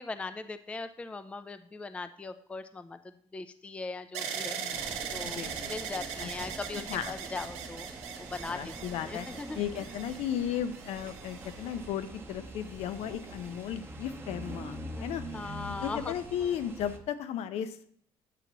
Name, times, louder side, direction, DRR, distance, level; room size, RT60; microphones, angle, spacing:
voice 1, 0.0-3.0 3.3-4.8 5.1-5.4 5.7-7.9 8.2-8.7 9.0-9.6 15.0-15.1 15.3-16.1, left 3 dB, 10° left, 10 dB, 0.3 m, -39 dB
sound 1, 4.1-12.2 12.9-13.5, right 7 dB, 85° right, 0.9 m, -40 dB
sound 2, 4.7-17.0, right 1 dB, 20° right, 0.8 m, -44 dB
voice 2, 5.2-5.7 6.2-6.3 6.9-7.1 8.5-15.6 15.8-17.9, left 9 dB, 75° left, 11 dB, 0.6 m, -35 dB
8.3 x 2.9 x 6.0 m, 0.65 s
cardioid pair, 125°, 11 cm